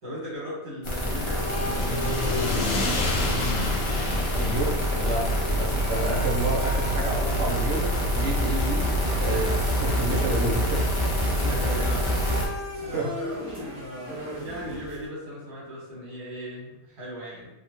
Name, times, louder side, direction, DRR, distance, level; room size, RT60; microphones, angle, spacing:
voice 1, 0.0-3.6 11.2-12.3 12.8-17.5, equal, 80° right, -8 dB, 2.0 m, -38 dB
sound 1, 0.8-12.5, equal, 40° left, 0.4 m, -26 dB
sound 2, 0.9-9.2, left 2 dB, 65° left, 1.0 m, -32 dB
sound 3, 1.0-15.1, left 1 dB, 35° right, 1.2 m, -38 dB
voice 2, 4.4-10.8 12.9-13.0, right 2 dB, 60° right, -3 dB, 1.1 m, -30 dB
3.5 x 2.4 x 2.9 m, 0.99 s
omnidirectional pair, 1.5 m